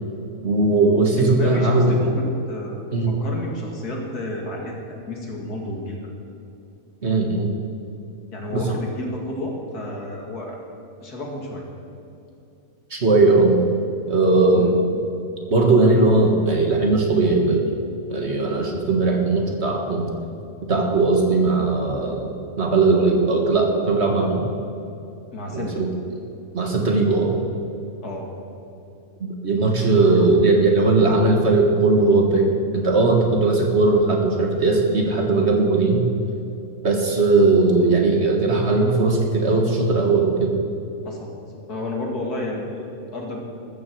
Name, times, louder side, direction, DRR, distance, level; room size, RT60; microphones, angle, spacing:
voice 1, 0.4-1.9 2.9-3.1 7.0-7.5 8.5-8.6 12.9-13.6 14.1-14.7 15.5-17.7 18.1-20.1 20.7-24.4 25.5-25.9 26.5-27.4 29.4-36.0 36.8-40.6, right 3 dB, 45° right, 1 dB, 1.9 m, -18 dB
voice 2, 1.2-6.0 8.3-10.6 11.0-11.6 14.5-14.7 25.3-25.8 28.0-28.3 41.0-41.3 41.7-43.4, left 1 dB, 80° left, -1 dB, 2.9 m, -31 dB
14.0 x 14.0 x 4.7 m, 2.8 s
omnidirectional pair, 1.6 m